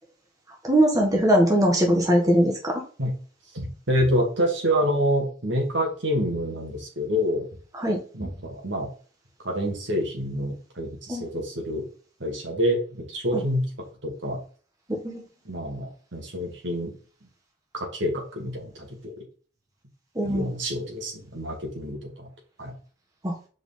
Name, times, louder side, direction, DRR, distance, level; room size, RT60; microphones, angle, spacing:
voice 1, 0.6-2.8 7.8-8.0 11.1-11.2 13.3-13.4 14.9-15.2 20.1-20.5 23.2-23.3, equal, 20° right, -1 dB, 1.6 m, -21 dB
voice 2, 3.5-7.5 8.1-8.9 9.4-11.9 12.2-13.7 14.0-14.4 15.5-17.0 17.7-19.1 20.2-22.3 22.6-22.7, equal, 65° right, 1 dB, 2.3 m, -27 dB
6.8 x 5.0 x 3.9 m, 0.40 s
head